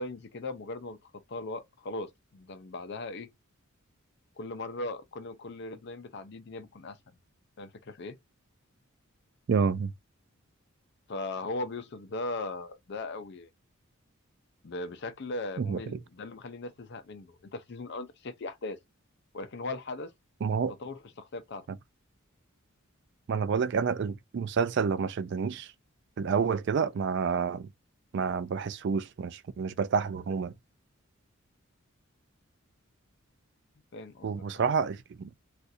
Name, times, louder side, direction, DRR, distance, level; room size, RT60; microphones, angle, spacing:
voice 1, 0.0-3.3 4.4-7.0 7.6-8.2 11.1-13.5 14.6-18.8 19.3-20.1 20.8-21.7 33.9-34.6, left 2 dB, 55° left, 0.5 m, -38 dB
voice 2, 9.5-9.9 15.6-15.8 20.4-20.7 23.3-25.7 26.2-27.7 28.1-30.5 34.2-35.4, right 6 dB, 55° right, 0.3 m, -29 dB
2.5 x 2.4 x 4.0 m
head